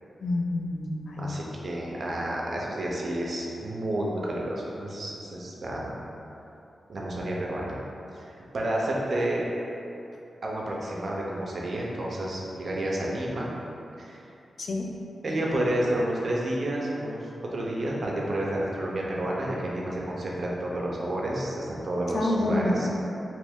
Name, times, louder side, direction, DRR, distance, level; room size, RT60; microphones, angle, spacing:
voice 1, 0.2-1.4 14.6-14.9 22.1-22.9, left 2 dB, 70° left, 0 dB, 0.3 m, -28 dB
voice 2, 1.2-5.9 6.9-7.8 8.2-9.4 10.4-13.5 14.0-14.2 15.2-17.2 17.5-22.9, right 1 dB, 55° right, -3 dB, 0.6 m, -30 dB
3.0 x 2.5 x 3.5 m, 2.8 s
wide cardioid pair, 85°, 0 cm